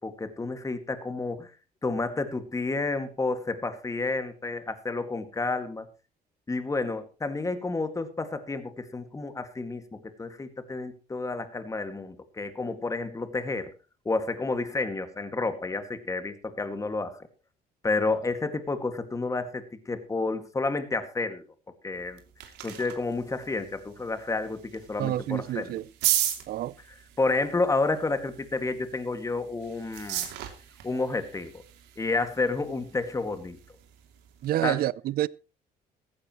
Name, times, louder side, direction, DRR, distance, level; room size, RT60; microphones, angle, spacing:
voice 1, 0.0-1.5 1.8-5.9 6.5-13.7 14.1-17.2 17.8-21.4 21.8-22.2 22.6-25.7 27.2-30.3 30.8-31.5 32.0-33.6 34.6-34.8, left 3 dB, 20° left, 2.0 m, -30 dB
sound 1, 21.9-34.5, right 12 dB, 90° right, 2.8 m, -37 dB
voice 2, 25.0-25.9 26.5-26.7 34.4-35.3, right 14 dB, 65° right, 0.6 m, -28 dB
16.0 x 15.0 x 3.1 m
cardioid pair, 110°, 17 cm